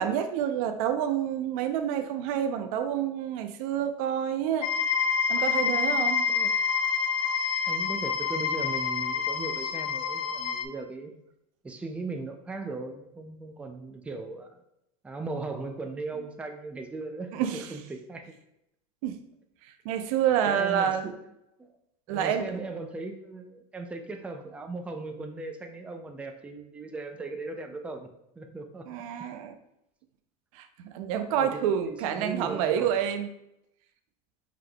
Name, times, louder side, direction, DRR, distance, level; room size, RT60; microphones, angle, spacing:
voice 1, 0.0-4.7 5.3-6.3 17.3-17.7 19.0-19.2 19.8-21.1 22.1-22.5 28.9-29.5 30.5-33.3, right 9 dB, 65° right, 8 dB, 0.6 m, -28 dB
sound 1, 4.6-10.6, left 6 dB, 70° left, 0.5 m, -27 dB
voice 2, 7.7-11.1 11.6-14.5 15.0-17.4 17.7-18.4 20.1-20.2 20.5-21.2 21.6-21.7 22.1-28.1 28.4-28.9 31.3-33.0, right 3 dB, 5° right, 5 dB, 0.4 m, -38 dB
4.9 x 3.8 x 2.3 m, 0.81 s
supercardioid pair, 130°, 19 cm